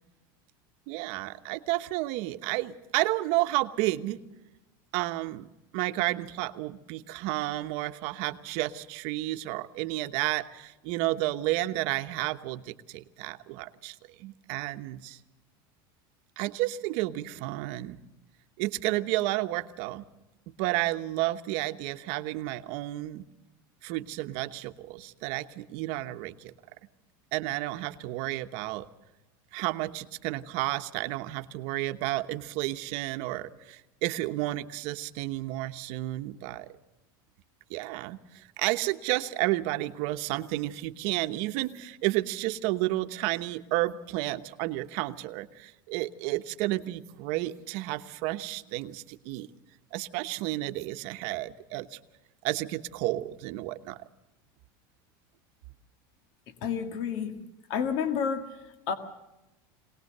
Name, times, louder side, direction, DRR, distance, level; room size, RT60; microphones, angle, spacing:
voice 1, 0.9-4.2 4.9-5.5 5.7-15.2 16.4-18.0 18.6-20.0 20.6-23.2 23.8-26.5 27.3-28.9 29.5-36.7 37.7-49.5 49.9-52.0 52.4-54.0, right 17 dB, 60° right, 9 dB, 1.0 m, -31 dB
voice 2, 56.5-57.4 57.7-59.0, left 7 dB, 60° left, 7 dB, 2.0 m, -30 dB
23.0 x 18.5 x 6.7 m, 0.98 s
supercardioid pair, 150°, 11 cm